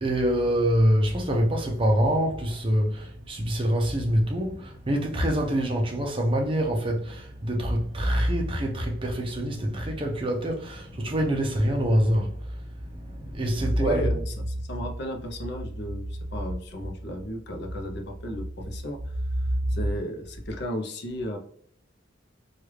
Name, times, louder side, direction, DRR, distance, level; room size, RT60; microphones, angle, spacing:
voice 1, 0.0-14.1 19.7-19.9, equal, 25° right, 0.6 m, -25 dB
voice 2, 13.8-19.1 19.7-21.4, equal, 55° left, 0.6 m, -34 dB
3.2 x 2.4 x 3.1 m
head